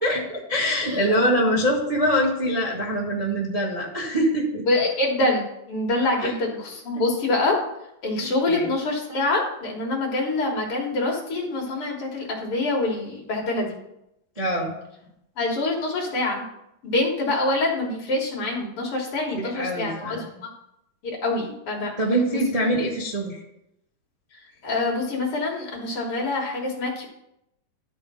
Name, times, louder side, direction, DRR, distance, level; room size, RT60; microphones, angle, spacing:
voice 1, 0.0-4.7 6.2-6.3 8.2-8.7 14.3-14.7 19.3-20.2 22.0-23.4, equal, 35° right, -3 dB, 0.6 m, -24 dB
voice 2, 4.7-7.6 8.0-13.8 15.4-16.4 16.8-20.5 21.0-21.9 22.3-22.4 24.6-27.1, left 2 dB, 50° left, -2 dB, 2.0 m, -25 dB
12.0 x 4.1 x 5.5 m, 0.82 s
omnidirectional pair, 3.8 m